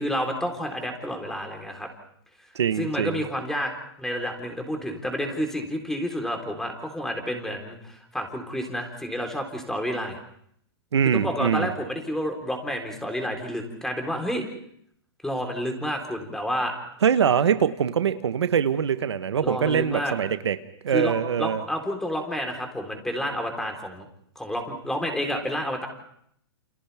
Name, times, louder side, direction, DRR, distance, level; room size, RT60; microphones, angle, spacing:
voice 1, 0.0-1.9 2.8-3.7 4.0-10.2 11.1-14.4 15.2-16.8 19.4-20.1 20.9-21.1 21.4-24.1 24.4-25.9, equal, 5° left, 3 dB, 3.9 m, -30 dB
voice 2, 2.5-3.2 10.9-11.7 17.0-20.6 20.8-21.6, right 7 dB, 90° right, 11 dB, 1.2 m, -23 dB
29.0 x 28.0 x 3.5 m, 0.70 s
hypercardioid pair, 135°, 14 cm